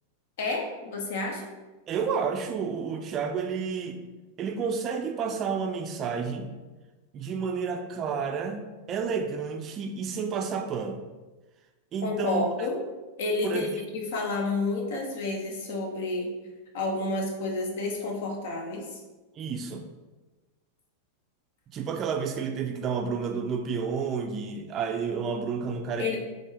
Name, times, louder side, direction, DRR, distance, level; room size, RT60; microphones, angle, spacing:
voice 1, 0.4-1.4 12.0-12.8 13.2-16.3 16.7-18.9 26.0-26.2, left 2 dB, 55° left, 1 dB, 0.9 m, -30 dB
voice 2, 1.9-4.0 4.4-6.5 7.1-11.0 11.9-12.7 13.4-13.7 19.4-19.8 21.7-26.2, right 5 dB, 30° right, 4 dB, 0.4 m, -30 dB
4.2 x 3.2 x 3.5 m, 1.2 s
figure-of-eight pair, 90°, 0 cm